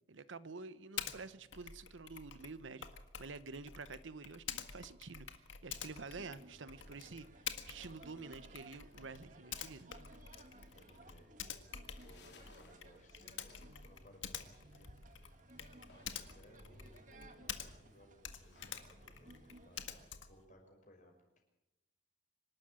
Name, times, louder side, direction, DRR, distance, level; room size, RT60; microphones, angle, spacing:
voice 1, 0.1-2.9 3.2-5.3 5.6-9.9, right 4 dB, 85° right, 14 dB, 0.9 m, -49 dB
Typing, 1.0-1.2 1.5-17.9 18.2-20.4, left 8 dB, 90° left, 1.7 m, -48 dB
sound 1, 5.7-20.1, right 2 dB, 40° right, 1.9 m, -60 dB
voice 2, 10.7-11.3 12.0-14.9 15.9-21.4, equal, 40° left, 2 dB, 5.9 m, -63 dB
sound 2, 11.8-20.5, left 4 dB, 60° left, 3.3 m, -67 dB
26.0 x 12.5 x 9.0 m, 0.95 s
head